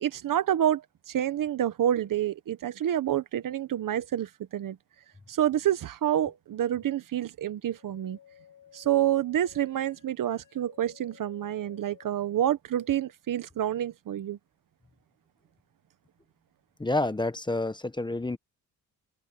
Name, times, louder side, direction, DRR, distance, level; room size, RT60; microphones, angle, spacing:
voice 1, 0.0-4.8 5.3-8.2 8.7-14.4, right 11 dB, 65° right, 1.1 m, -28 dB
sound 1, 7.6-12.6, left 10 dB, 60° left, 7.1 m, -56 dB
voice 2, 16.8-18.4, left 2 dB, 10° left, 1.1 m, -28 dB
open air
cardioid pair, 110°, 36 cm